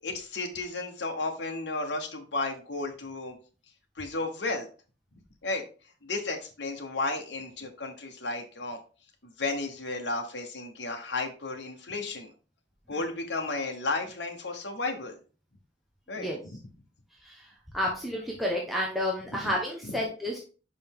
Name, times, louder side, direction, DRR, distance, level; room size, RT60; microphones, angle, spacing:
voice 1, 0.0-3.4 4.0-4.7 5.4-5.6 6.0-8.8 9.2-12.3 12.9-15.2 16.1-16.3 19.4-19.5 19.8-19.9, left 3 dB, 75° left, 3 dB, 1.2 m, -33 dB
voice 2, 17.7-20.4, left 1 dB, ahead, -2 dB, 1.0 m, -30 dB
5.5 x 5.1 x 3.6 m, 0.37 s
head